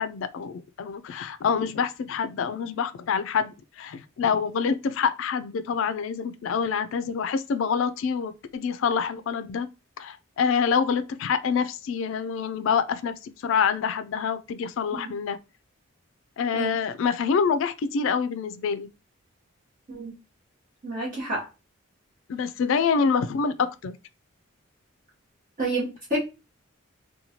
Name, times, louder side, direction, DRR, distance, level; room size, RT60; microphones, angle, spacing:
voice 1, 0.0-9.7 10.0-13.1 13.4-15.4 16.4-18.9 22.3-23.9, left 6 dB, 65° left, 0.3 m, -26 dB
voice 2, 20.8-21.5 25.6-26.2, right 2 dB, 40° right, 0.8 m, -29 dB
2.9 x 2.2 x 2.7 m
head